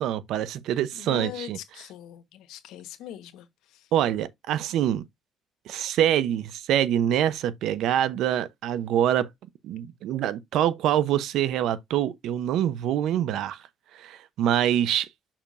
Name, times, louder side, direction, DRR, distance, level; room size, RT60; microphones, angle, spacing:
voice 1, 0.0-1.8 3.9-5.0 5.7-9.3 9.6-13.6 13.9-15.1, right 11 dB, 70° right, 0.8 m, -25 dB
voice 2, 1.1-3.4, left 11 dB, 85° left, 1.3 m, -40 dB
6.6 x 5.8 x 2.6 m
cardioid pair, 140°, 0 cm